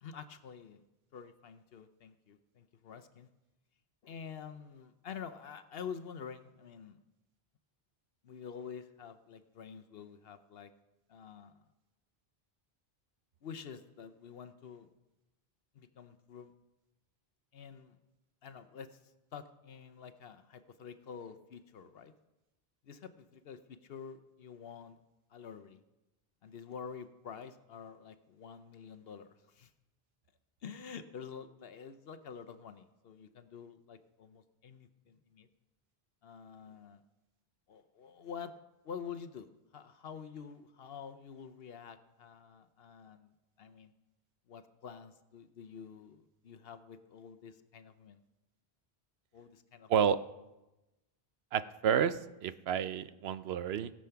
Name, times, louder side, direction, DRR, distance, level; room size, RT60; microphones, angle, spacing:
voice 1, 0.0-0.8 1.1-3.3 4.0-7.0 8.2-10.7 11.1-11.6 13.4-14.9 15.7-16.5 17.5-18.0 18.4-19.0 19.3-22.1 22.8-25.0 25.3-25.8 26.4-29.7 30.6-35.5 36.2-37.0 37.7-38.5 38.8-39.5 39.7-43.3 43.6-43.9 44.5-48.2 49.3-49.9, left 7 dB, 70° left, 10 dB, 0.9 m, -48 dB
voice 2, 51.5-53.9, right 8 dB, 80° right, 14 dB, 0.9 m, -30 dB
17.5 x 7.5 x 5.8 m, 0.99 s
omnidirectional pair, 1.0 m